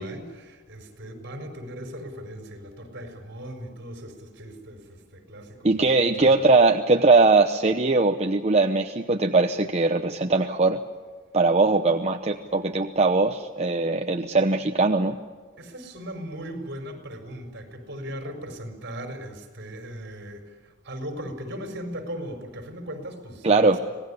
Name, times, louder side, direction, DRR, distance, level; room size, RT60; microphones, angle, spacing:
voice 1, 0.0-6.4 12.5-12.6 15.6-23.8, equal, 60° right, 5 dB, 5.0 m, -38 dB
voice 2, 5.6-10.8 11.3-15.1 23.4-23.8, right 3 dB, 35° right, 5 dB, 0.9 m, -20 dB
26.0 x 19.0 x 10.0 m, 1.4 s
head